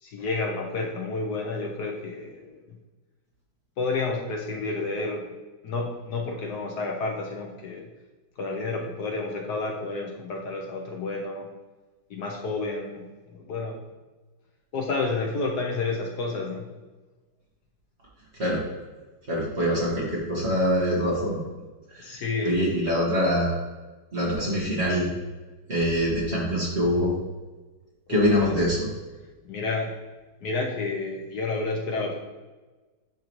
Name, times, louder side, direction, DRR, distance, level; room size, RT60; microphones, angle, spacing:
voice 1, 0.0-2.8 3.8-5.3 5.6-7.9 8.4-11.5 12.1-13.8 14.7-16.7 22.0-22.6 28.1-28.7 29.4-30.0 30.4-32.2, left 3 dB, 65° left, 1 dB, 1.2 m, -30 dB
voice 2, 19.3-21.4 21.9-22.2 22.4-23.6 24.1-25.1 25.7-27.1 28.1-28.9, equal, 35° right, -5 dB, 1.7 m, -24 dB
10.5 x 3.8 x 3.0 m, 1.2 s
omnidirectional pair, 2.0 m